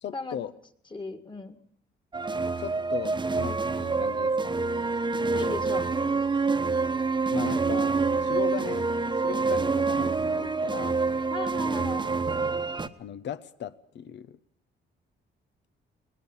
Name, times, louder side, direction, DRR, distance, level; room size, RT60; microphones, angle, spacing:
voice 1, 0.0-0.5 2.6-4.6 7.3-8.9 9.2-11.0 13.0-14.4, left 9 dB, 65° left, 15 dB, 1.0 m, -37 dB
voice 2, 0.9-1.6 5.3-5.9 11.3-12.2, left 3 dB, 25° left, 10 dB, 2.0 m, -36 dB
sound 1, 2.1-12.9, right 4 dB, 25° right, 1.2 m, -27 dB
20.5 x 19.0 x 7.3 m, 0.65 s
cardioid pair, 90°, 20 cm